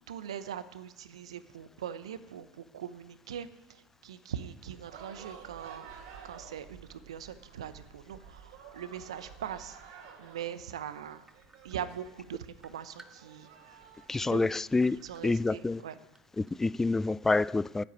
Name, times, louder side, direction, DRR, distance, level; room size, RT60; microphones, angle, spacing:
voice 1, 0.0-5.9 6.2-9.8 10.2-11.3 11.6-13.5 14.1-14.5 15.0-15.9, right 9 dB, 80° right, 0.8 m, -41 dB
sound 1, 4.7-15.7, right 6 dB, 65° right, 2.6 m, -52 dB
sound 2, 11.3-12.2 12.6-13.7 14.1-14.2 14.8-15.8 16.1-16.7, right 3 dB, 15° right, 1.0 m, -57 dB
voice 2, 14.1-15.8 16.4-17.8, left 3 dB, 10° left, 0.3 m, -28 dB
8.8 x 8.6 x 9.2 m
hypercardioid pair, 80°, 3 cm